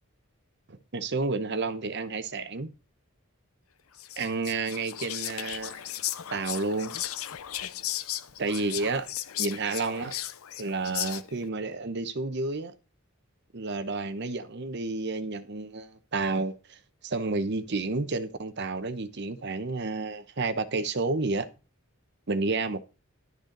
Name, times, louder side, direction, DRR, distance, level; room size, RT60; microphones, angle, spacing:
voice 1, 0.7-2.7 4.2-6.0 6.3-6.9 8.4-9.1 9.4-10.1 10.6-12.7 13.5-21.5 22.3-22.8, right 3 dB, 55° right, 0.9 m, -30 dB
Whispering, 4.0-11.4, left 13 dB, 85° left, 0.6 m, -36 dB
12.0 x 6.5 x 3.9 m
head